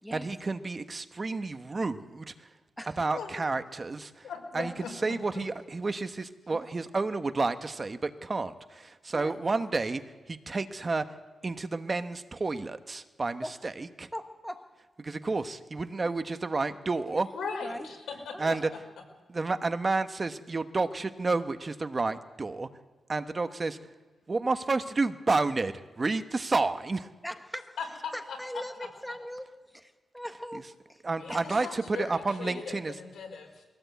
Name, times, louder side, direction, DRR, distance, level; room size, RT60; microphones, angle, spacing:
voice 1, 0.1-2.5 3.0-4.3 4.5-10.0 10.3-11.1 11.4-14.1 15.0-17.3 18.4-18.7 19.3-22.7 23.1-23.8 24.3-27.1 31.0-32.9, right 3 dB, 30° right, 9 dB, 1.1 m, -30 dB
voice 2, 4.2-4.9 17.3-18.6 27.8-28.4 31.2-33.7, left 5 dB, 85° left, 2 dB, 5.4 m, -39 dB
voice 3, 14.1-14.6 17.1-17.2 17.6-17.9 18.3-18.5 27.2-27.8 28.1-31.0 31.3-31.5 32.5-32.6, equal, ahead, 7 dB, 1.3 m, -40 dB
23.0 x 17.0 x 8.2 m, 1.3 s
wide cardioid pair, 115°, 0 cm